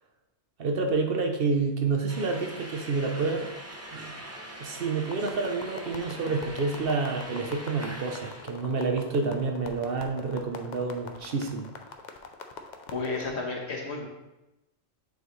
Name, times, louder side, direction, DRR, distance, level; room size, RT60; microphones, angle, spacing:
voice 1, 0.6-3.5 3.9-4.2 4.6-11.7, right 4 dB, 60° right, 3 dB, 0.9 m, -29 dB
sound 1, 2.1-8.4, right 1 dB, 15° right, 0.6 m, -42 dB
sound 2, 5.0-13.3, left 5 dB, 55° left, 0.6 m, -43 dB
voice 2, 12.9-14.1, left 3 dB, 70° left, 0 dB, 1.4 m, -32 dB
8.2 x 4.0 x 3.1 m, 0.96 s
omnidirectional pair, 1.2 m